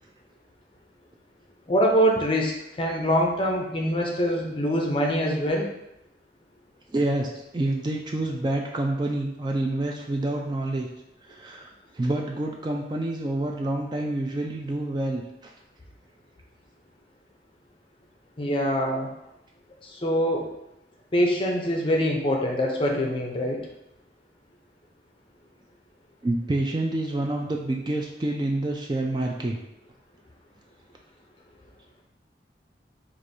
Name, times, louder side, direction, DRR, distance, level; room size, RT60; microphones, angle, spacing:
voice 1, 1.7-2.5 2.8-5.7 18.4-19.1 19.8-20.5 21.1-23.7, equal, 30° left, 0 dB, 0.5 m, -24 dB
voice 2, 6.9-10.9 11.3-11.7 11.9-15.5 26.2-29.6, right 1 dB, 25° right, 1 dB, 0.3 m, -28 dB
4.6 x 2.5 x 2.7 m, 0.86 s
head